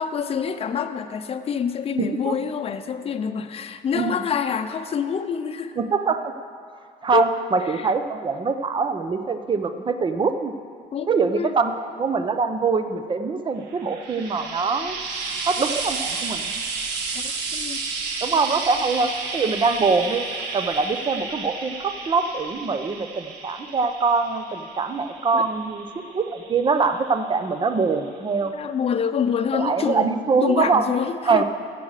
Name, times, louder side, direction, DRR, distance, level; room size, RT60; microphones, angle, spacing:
voice 1, 0.0-5.7 7.1-7.3 7.6-7.9 10.9-11.5 17.1-17.8 25.3-25.4 28.4-31.4, left 7 dB, 35° left, 8 dB, 0.7 m, -26 dB
voice 2, 2.0-2.4 3.9-4.1 5.8-6.3 7.0-10.5 11.1-15.0 15.5-16.6 18.2-20.2 20.5-28.5 29.5-30.9 31.2-31.4, right 4 dB, 30° right, 9 dB, 0.8 m, -23 dB
Frying (food), 13.7-27.1 28.1-28.2, right 4 dB, 85° right, 1.5 m, -32 dB
14.5 x 7.7 x 6.5 m, 2.3 s
cardioid pair, 110°, 17 cm